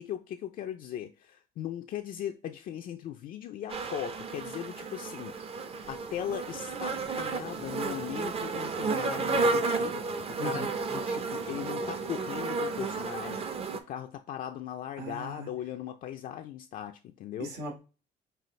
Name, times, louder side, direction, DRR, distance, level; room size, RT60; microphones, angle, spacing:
voice 1, 0.0-5.4 5.9-13.5 13.7-17.5, left 10 dB, 55° left, 0.4 m, -38 dB
sound 1, 3.7-13.8, right 4 dB, 35° right, 0.6 m, -32 dB
voice 2, 10.4-10.7 15.0-15.5 17.4-17.8, right 1 dB, 70° right, 1.5 m, -38 dB
5.5 x 2.4 x 3.1 m
cardioid pair, 110°, 17 cm